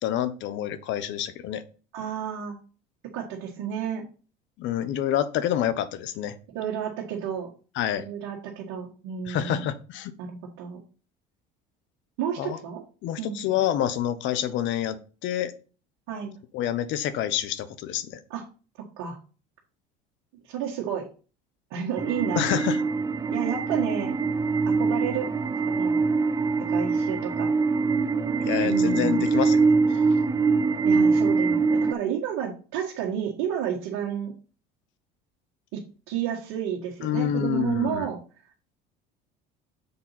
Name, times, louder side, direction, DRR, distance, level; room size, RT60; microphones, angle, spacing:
voice 1, 0.0-1.6 4.6-6.3 7.7-8.0 9.3-10.1 12.4-12.6 13.0-15.0 15.2-15.5 16.5-18.2 22.4-22.8 28.5-30.0 37.0-38.1, left 11 dB, 60° left, 13 dB, 1.0 m, -27 dB
voice 2, 1.9-2.6 3.1-4.1 6.5-7.5 8.0-9.7 10.2-10.8 12.2-12.8 13.2-13.4 16.1-16.3 18.3-18.4 19.0-19.2 20.5-21.1 21.7-22.5 23.3-24.1 24.6-25.3 25.7-26.0 26.7-27.5 28.6-29.2 30.8-34.3 35.7-35.8 36.1-38.2, right 8 dB, 70° right, -3 dB, 1.6 m, -31 dB
sound 1, 22.0-31.9, right 4 dB, 20° right, 0.5 m, -23 dB
6.9 x 4.1 x 5.8 m, 0.37 s
supercardioid pair, 85°, 21 cm